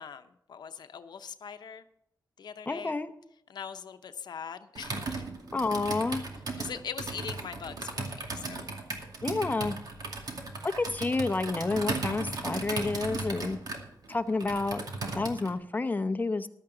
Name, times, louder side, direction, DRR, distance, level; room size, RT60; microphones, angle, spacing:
voice 1, 0.0-1.8 2.4-3.0 3.5-5.0 6.5-8.7, left 7 dB, 90° left, 9 dB, 0.7 m, -41 dB
voice 2, 2.7-3.1 5.5-6.2 9.2-9.8 10.8-13.6 14.1-14.9 15.1-16.5, left 3 dB, 25° left, 9 dB, 0.8 m, -29 dB
Computer keyboard, 4.8-15.5, right 3 dB, 65° right, 2.2 m, -36 dB
14.5 x 12.0 x 3.9 m, 0.77 s
wide cardioid pair, 120°, 7 cm